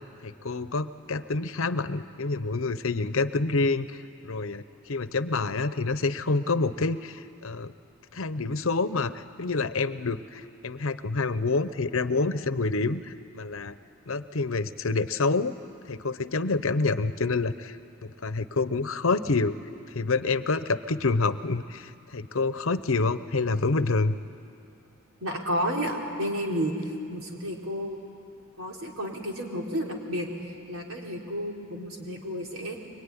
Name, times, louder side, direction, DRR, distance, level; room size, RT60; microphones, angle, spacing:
voice 1, 0.2-7.7 8.1-13.7 14.1-15.5 15.9-17.8 18.0-19.5 19.9-24.2, left 3 dB, 75° left, 13 dB, 0.9 m, -27 dB
voice 2, 25.2-28.0 28.6-32.8, equal, 80° right, 0 dB, 3.9 m, -31 dB
23.5 x 23.5 x 9.9 m, 2.5 s
head